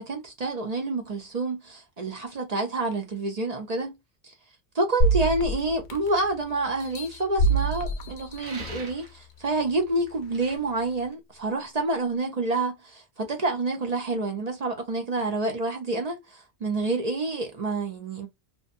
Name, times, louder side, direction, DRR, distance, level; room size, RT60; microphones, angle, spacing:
voice 1, 0.0-3.9 4.2-4.3 4.7-18.3, right 2 dB, 45° right, 0.6 m, -28 dB
sound 1, 5.0-6.3 6.8-8.9 9.5-9.6, right 2 dB, 60° left, 0.6 m, -26 dB
sound 2, 8.4-9.2 10.3-10.6, right 4 dB, 70° right, 1.1 m, -42 dB
2.6 x 2.2 x 2.5 m
omnidirectional pair, 1.2 m